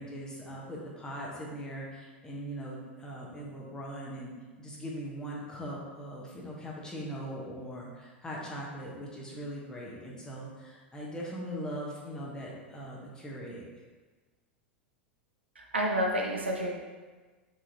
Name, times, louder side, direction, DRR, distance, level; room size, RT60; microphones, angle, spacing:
voice 1, 0.0-4.3 4.6-13.6, equal, 10° left, -4 dB, 1.0 m, -40 dB
voice 2, 15.6-16.8, equal, 85° right, 0 dB, 0.6 m, -29 dB
4.7 x 3.1 x 2.8 m, 1.3 s
figure-of-eight pair, 85°, 6 cm